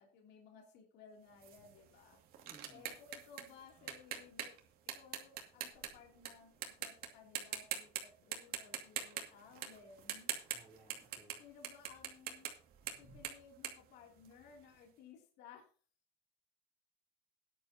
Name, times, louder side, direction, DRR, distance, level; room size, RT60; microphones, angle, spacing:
voice 1, 0.0-2.2 2.7-4.6 4.9-10.4 11.4-12.5 13.0-15.6, left 6 dB, 55° left, 1 dB, 3.0 m, -59 dB
sound 1, 1.4-6.3 6.6-7.1 7.3-8.0 8.3-14.6, right 10 dB, 45° right, 2.4 m, -43 dB
voice 2, 2.4-2.9 10.5-11.4, right 3 dB, 10° right, -7 dB, 3.7 m, -61 dB
14.5 x 10.5 x 2.9 m, 0.41 s
cardioid pair, 155°, 21 cm